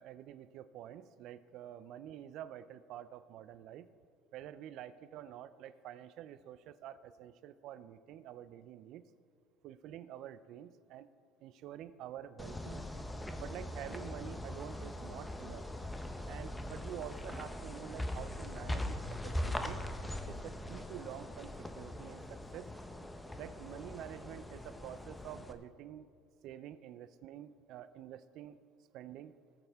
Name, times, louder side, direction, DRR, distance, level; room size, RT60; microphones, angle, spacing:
voice 1, 0.0-3.9 4.3-9.0 9.6-11.1 11.4-12.9 13.4-15.6 16.3-19.8 20.3-22.7 23.4-26.1 26.4-28.6 28.9-29.3, right 11 dB, 65° right, 14 dB, 0.5 m, -48 dB
sound 1, 12.4-25.5, left 1 dB, 10° left, 0.9 m, -41 dB
18.5 x 8.0 x 3.6 m, 2.2 s
supercardioid pair, 95°, 0 cm